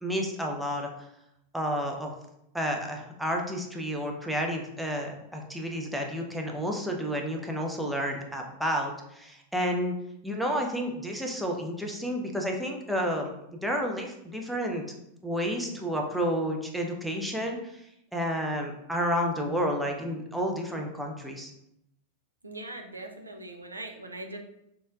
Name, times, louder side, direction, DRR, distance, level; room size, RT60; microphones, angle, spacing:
voice 1, 0.0-0.9 1.5-2.1 2.5-10.0 10.2-13.3 13.6-14.8 15.2-17.9 18.1-21.5, equal, ahead, 0 dB, 0.5 m, -30 dB
voice 2, 22.4-24.4, right 2 dB, 80° right, 3 dB, 0.4 m, -41 dB
4.4 x 2.1 x 2.4 m, 0.80 s
figure-of-eight pair, 90°, 0 cm